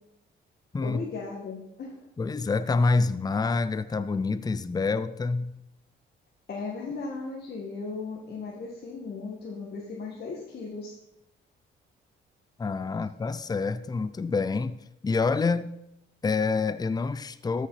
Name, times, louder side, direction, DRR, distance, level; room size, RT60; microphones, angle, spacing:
voice 1, 0.8-2.1 6.5-10.9, left 4 dB, 55° left, 2.0 m, -37 dB
voice 2, 2.2-5.6 12.6-15.7 16.2-17.7, left 4 dB, 20° left, 0.5 m, -27 dB
13.0 x 6.3 x 5.8 m
cardioid pair, 90°, 20 cm